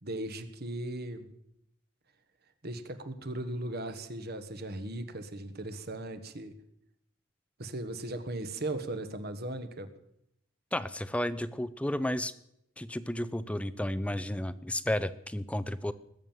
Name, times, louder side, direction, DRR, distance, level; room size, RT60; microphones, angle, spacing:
voice 1, 0.0-1.4 2.6-6.5 7.6-9.9, right 1 dB, 50° right, 10 dB, 1.5 m, -37 dB
voice 2, 10.7-12.3 12.8-15.9, left 1 dB, 5° left, 15 dB, 0.6 m, -32 dB
20.0 x 7.4 x 9.1 m, 0.79 s
head